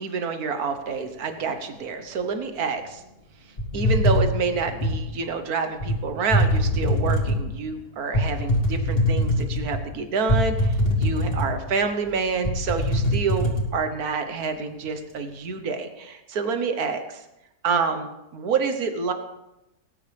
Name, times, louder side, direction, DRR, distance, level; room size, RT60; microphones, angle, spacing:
voice 1, 0.0-3.0 3.7-17.2 17.6-19.1, right 5 dB, 70° right, 7 dB, 1.7 m, -28 dB
sound 1, 3.6-5.0 5.8-6.0 6.3-7.5 8.1-9.8 10.3-11.7 12.1-12.2 12.4-13.6, equal, 35° left, 2.4 m, -22 dB
19.0 x 9.7 x 3.5 m, 0.92 s
omnidirectional pair, 1.7 m